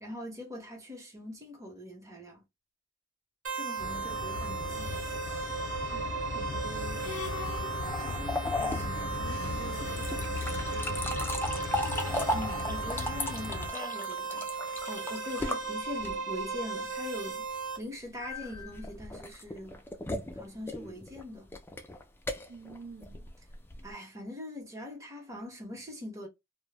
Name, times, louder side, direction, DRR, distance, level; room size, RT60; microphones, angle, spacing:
voice 1, 0.0-2.4 3.5-5.1 12.3-14.5 14.9-17.5 17.8-19.8 20.4-21.5 23.8-26.3, left 1 dB, 15° right, 0.8 m, -42 dB
sound 1, 3.4-17.8, right 4 dB, 85° right, 1.0 m, -36 dB
sound 2, 3.8-13.7, left 3 dB, 85° left, 0.6 m, -37 dB
voice 2, 5.9-7.1 8.0-11.8 22.5-23.3, right 4 dB, 60° right, 0.5 m, -48 dB
sound 3, 7.8-16.4 18.2-23.9, left 1 dB, 10° left, 0.3 m, -37 dB
2.1 x 2.1 x 3.2 m
head